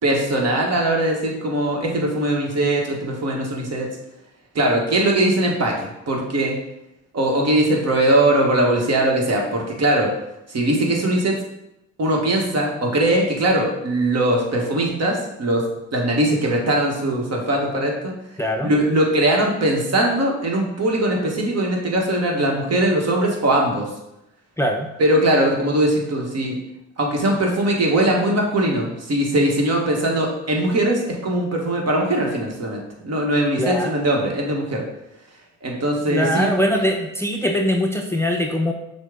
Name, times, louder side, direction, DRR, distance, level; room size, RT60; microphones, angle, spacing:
voice 1, 0.0-3.9 4.5-6.6 7.1-10.1 10.5-11.4 12.0-15.6 15.9-18.1 18.6-23.9 25.0-26.6 27.0-34.8 35.6-36.5, right 1 dB, 50° right, 0 dB, 1.3 m, -20 dB
voice 2, 18.4-18.7 24.6-24.9 33.6-33.9 36.1-38.7, equal, 10° left, 2 dB, 0.5 m, -22 dB
6.3 x 2.3 x 3.7 m, 0.88 s
supercardioid pair, 60°, 32 cm